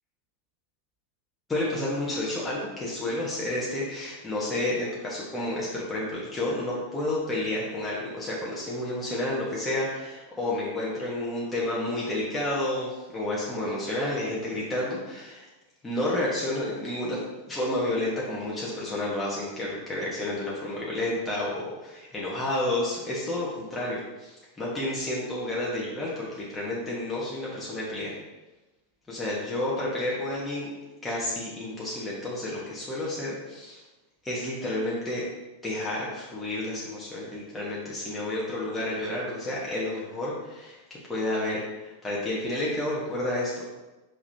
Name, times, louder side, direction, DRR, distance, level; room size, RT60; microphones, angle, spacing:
voice 1, 1.5-15.5 15.8-17.2 17.5-28.2 29.1-30.7 31.0-33.8 34.2-35.2 35.6-40.8 41.1-43.7, left 1 dB, 10° left, -6 dB, 1.5 m, -30 dB
6.2 x 5.7 x 2.8 m, 1.1 s
figure-of-eight pair, 90°, 0 cm